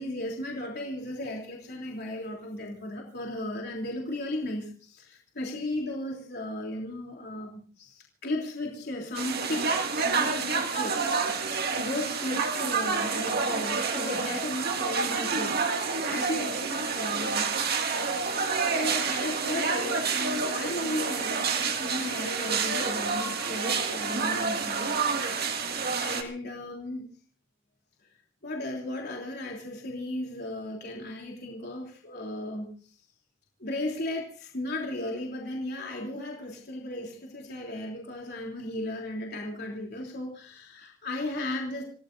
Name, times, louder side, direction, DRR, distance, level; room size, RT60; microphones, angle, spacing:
voice 1, 0.0-9.7 10.0-18.2 18.7-24.9 25.2-27.0 28.4-32.9 33.6-41.8, left 1 dB, 50° left, -1 dB, 3.3 m, -35 dB
sound 1, 9.1-26.2, right 5 dB, 50° right, 2.2 m, -28 dB
28.5 x 17.5 x 2.7 m, 0.41 s
head